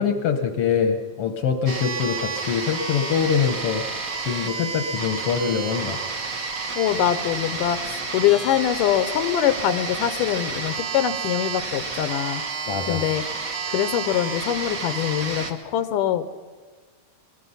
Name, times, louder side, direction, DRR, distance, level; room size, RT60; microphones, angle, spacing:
voice 1, 0.0-3.8 4.2-6.0 12.7-13.0, left 6 dB, 65° left, 7 dB, 1.6 m, -24 dB
sound 1, 1.7-15.5, right 4 dB, 55° right, 0.9 m, -30 dB
voice 2, 6.8-12.4 12.9-13.2 13.7-16.2, left 11 dB, 90° left, 12 dB, 2.4 m, -23 dB
23.0 x 21.0 x 5.6 m, 1.4 s
omnidirectional pair, 3.7 m